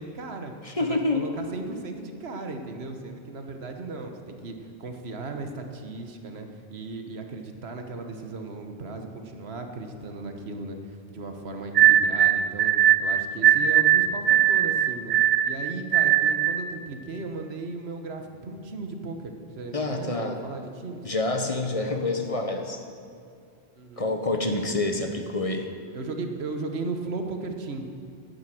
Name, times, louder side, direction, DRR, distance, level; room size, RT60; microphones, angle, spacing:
voice 1, 0.0-0.5 0.8-15.2 15.4-21.1 23.8-24.1 25.9-27.9, right 3 dB, 80° right, 5 dB, 1.4 m, -36 dB
voice 2, 0.6-1.2 19.7-20.4 21.0-22.8 24.0-25.7, left 2 dB, 35° left, 4 dB, 1.0 m, -27 dB
sound 1, 11.7-16.6, right 10 dB, 55° right, 0.6 m, -20 dB
11.5 x 9.6 x 7.6 m, 2.4 s
omnidirectional pair, 1.1 m